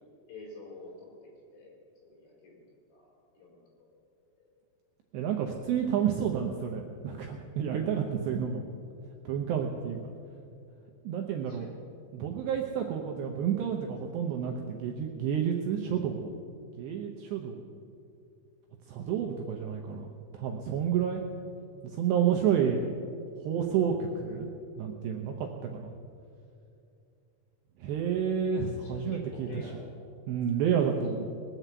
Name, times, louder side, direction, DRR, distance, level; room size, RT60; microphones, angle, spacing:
voice 1, 0.3-1.1 1.5-2.6 2.9-3.1 3.4-3.9 4.4-4.5 11.5-11.8 28.8-29.9 30.9-31.0, left 3 dB, 55° left, -3 dB, 5.4 m, -48 dB
voice 2, 5.1-8.7 9.3-10.0 11.0-11.7 12.1-16.3 16.8-17.6 18.9-20.1 20.3-21.2 21.9-22.8 23.4-24.5 24.8-25.9 27.8-29.7 30.3-31.3, right 8 dB, 80° right, 2 dB, 2.6 m, -30 dB
20.5 x 7.5 x 8.1 m, 2.5 s
omnidirectional pair, 5.9 m